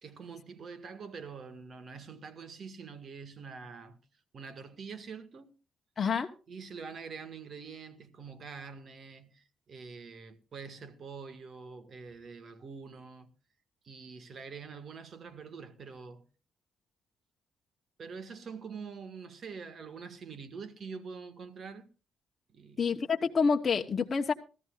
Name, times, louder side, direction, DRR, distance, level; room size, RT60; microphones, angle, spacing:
voice 1, 0.0-4.0 4.3-5.5 6.5-13.3 13.8-16.3 18.0-21.9 22.5-22.9, right 5 dB, 50° right, 1.8 m, -45 dB
voice 2, 6.0-6.3 22.8-24.3, left 5 dB, 40° left, 1.0 m, -28 dB
19.0 x 14.0 x 2.4 m
cardioid pair, 90°, 0 cm